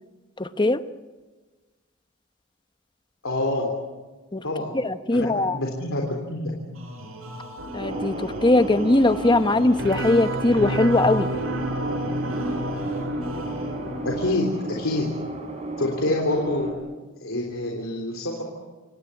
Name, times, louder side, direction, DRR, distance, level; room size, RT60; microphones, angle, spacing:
voice 1, 0.4-0.8 4.3-4.4 4.7-5.6 7.7-11.3, left 2 dB, 20° left, 10 dB, 0.8 m, -20 dB
voice 2, 3.2-3.7 4.4-4.8 5.1-6.5 14.0-15.1 15.8-16.7 17.2-18.4, left 1 dB, 75° left, 0 dB, 3.5 m, -26 dB
sound 1, 6.7-14.1, right 1 dB, 85° right, 5.9 m, -41 dB
sound 2, 7.6-14.4, right 1 dB, 65° right, 3.2 m, -31 dB
sound 3, 7.8-16.7, right 1 dB, 35° right, 4.0 m, -33 dB
28.0 x 17.5 x 9.7 m, 1.3 s
head